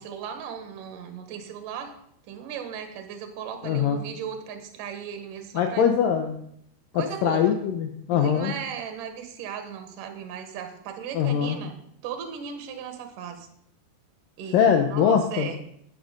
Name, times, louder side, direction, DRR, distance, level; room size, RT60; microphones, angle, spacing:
voice 1, 0.0-1.9 2.3-5.9 6.9-7.6 8.1-11.7 12.0-13.5 14.4-15.6, right 8 dB, 60° right, 6 dB, 2.6 m, -36 dB
voice 2, 3.6-4.0 5.6-6.4 6.9-8.5 11.1-11.6 14.5-15.5, left 8 dB, 80° left, 5 dB, 2.0 m, -22 dB
12.0 x 9.5 x 5.2 m, 0.72 s
omnidirectional pair, 5.1 m